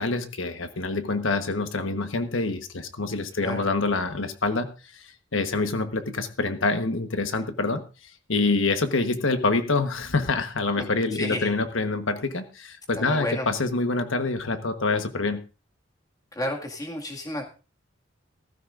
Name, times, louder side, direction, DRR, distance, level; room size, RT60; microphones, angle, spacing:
voice 1, 0.0-7.8 8.3-15.4, left 3 dB, 85° left, 7 dB, 1.3 m, -26 dB
voice 2, 10.8-11.5 13.0-13.5 16.3-17.4, left 1 dB, 20° left, 0 dB, 2.1 m, -31 dB
16.5 x 14.5 x 2.6 m, 0.33 s
head